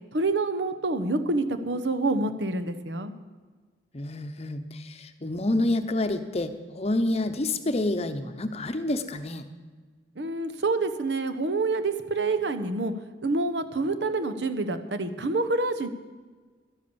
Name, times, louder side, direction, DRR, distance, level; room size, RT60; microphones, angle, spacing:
voice 1, 0.1-3.1 10.2-12.9 13.2-15.9, right 3 dB, 75° right, 10 dB, 1.0 m, -27 dB
voice 2, 3.9-9.4, left 2 dB, 35° left, 9 dB, 0.8 m, -28 dB
12.5 x 10.5 x 7.0 m, 1.4 s
head